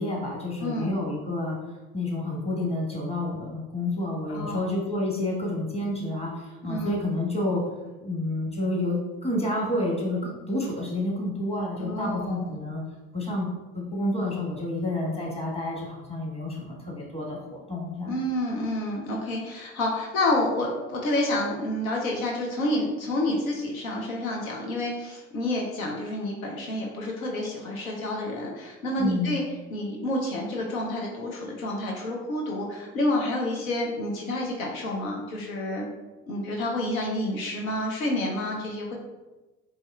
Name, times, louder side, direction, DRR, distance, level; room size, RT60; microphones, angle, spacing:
voice 1, 0.0-7.7 8.0-12.8 13.1-18.1 29.0-29.3, left 1 dB, 15° left, -3 dB, 1.4 m, -29 dB
voice 2, 0.6-1.0 4.3-4.6 6.6-6.9 11.8-12.5 18.1-29.4 29.7-35.9 36.3-38.9, left 1 dB, 85° left, -1 dB, 0.6 m, -29 dB
4.1 x 3.2 x 2.3 m, 1.1 s
hypercardioid pair, 60°, 41 cm